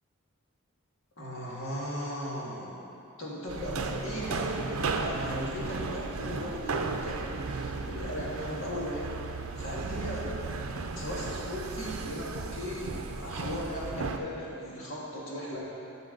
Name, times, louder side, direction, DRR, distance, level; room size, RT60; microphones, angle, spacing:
voice 1, 1.2-2.8 3.2-9.2 9.6-10.3 11.0-15.6, equal, 65° left, -6 dB, 2.0 m, -37 dB
sound 1, 3.5-14.2, right 4 dB, 80° right, 0.5 m, -35 dB
12.0 x 5.8 x 3.9 m, 3.0 s
head